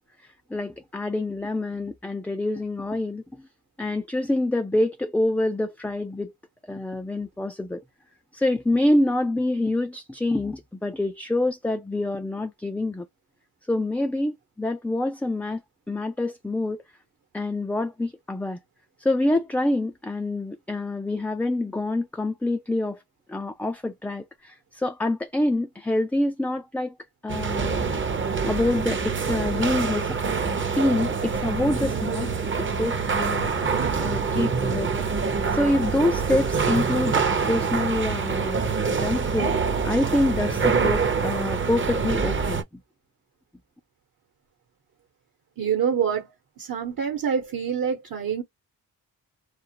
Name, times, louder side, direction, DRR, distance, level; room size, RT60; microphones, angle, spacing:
voice 1, 0.2-3.4 3.8-6.3 6.7-7.8 8.3-13.1 13.7-15.6 15.9-16.8 17.3-18.6 19.0-23.0 23.3-26.9 27.2-27.9 28.4-30.2 30.4-38.6 38.9-39.6 39.8-42.6, left 2 dB, 5° left, 0.3 m, -26 dB
sound 1, 27.3-42.6, right 5 dB, 30° right, 0.7 m, -25 dB
voice 2, 45.6-48.4, right 7 dB, 60° right, 1.1 m, -26 dB
2.4 x 2.0 x 2.9 m
supercardioid pair, 60°, 38 cm